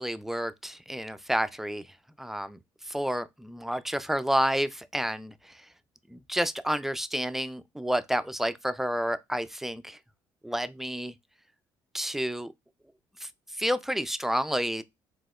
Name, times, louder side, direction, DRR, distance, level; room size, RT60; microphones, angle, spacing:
voice 1, 0.0-1.8 2.2-2.6 2.8-5.6 6.1-10.0 10.4-11.1 11.9-12.5 13.2-13.3 13.6-14.8, equal, 5° right, 0.3 m, -30 dB
3.9 x 2.9 x 2.3 m
supercardioid pair, 75°, 10 cm